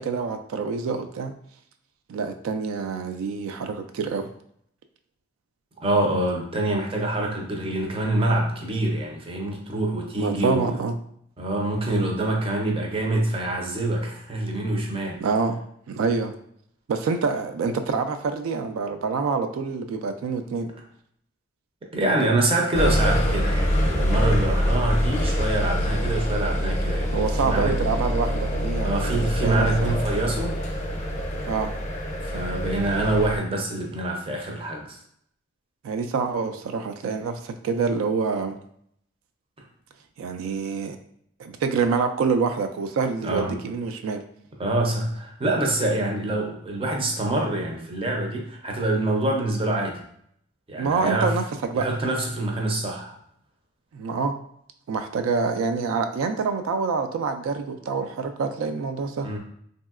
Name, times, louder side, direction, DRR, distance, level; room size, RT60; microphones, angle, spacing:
voice 1, 0.0-1.3 2.1-4.3 10.2-11.0 15.2-15.6 15.9-16.3 16.9-20.7 27.1-30.0 31.5-31.7 35.8-38.6 40.2-41.0 41.4-44.2 50.8-51.4 51.7-51.9 53.9-54.3 54.9-59.3, right 5 dB, 90° right, 8 dB, 0.3 m, -26 dB
voice 2, 5.8-10.6 11.4-15.2 21.9-27.9 28.8-30.6 32.2-35.0 43.2-43.6 44.6-50.0 50.7-51.3 51.7-53.1 59.2-59.4, right 2 dB, 25° right, 1 dB, 0.5 m, -25 dB
sound 1, 22.7-33.4, equal, 35° left, 0.5 m, -25 dB
3.0 x 2.7 x 2.4 m, 0.68 s
head